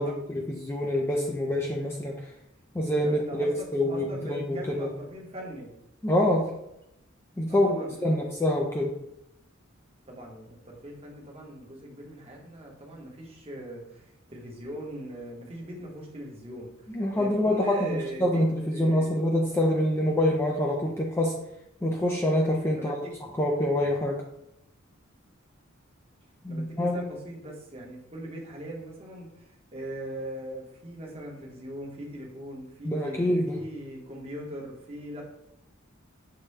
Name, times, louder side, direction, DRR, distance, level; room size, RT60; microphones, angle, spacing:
voice 1, 0.0-2.2 2.7-3.5 3.7-4.9 6.0-6.5 7.4-9.0 16.9-21.4 21.8-23.0 23.4-24.2 26.4-27.0 32.8-33.6, left 1 dB, 10° left, -1 dB, 0.4 m, -26 dB
voice 2, 3.0-5.7 7.5-8.3 10.1-18.4 18.7-19.2 22.7-23.2 26.5-35.2, right 1 dB, 30° right, -2 dB, 1.0 m, -40 dB
6.6 x 2.2 x 3.2 m, 0.82 s
head